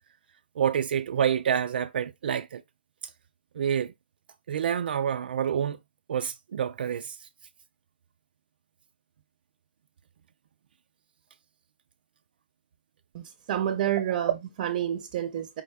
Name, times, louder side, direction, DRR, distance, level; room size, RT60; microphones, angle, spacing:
voice 1, 0.6-2.6 3.5-3.9 4.5-5.8 6.1-7.3, right 8 dB, 65° right, 0.4 m, -28 dB
voice 2, 13.1-15.6, right 10 dB, 35° right, 0.7 m, -28 dB
5.1 x 2.2 x 3.3 m
hypercardioid pair, 145°, 6 cm